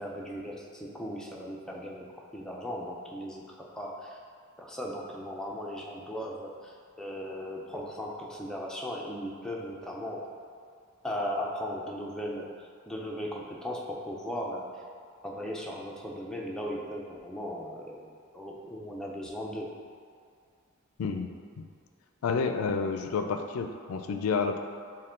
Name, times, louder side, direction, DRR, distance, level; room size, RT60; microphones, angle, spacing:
voice 1, 0.0-4.2 4.6-10.3 11.0-14.7 15.2-19.8, equal, 5° left, -2 dB, 0.4 m, -37 dB
voice 2, 21.0-21.7 22.2-24.6, left 5 dB, 80° left, 6 dB, 0.4 m, -30 dB
6.5 x 2.2 x 3.7 m, 2.2 s
head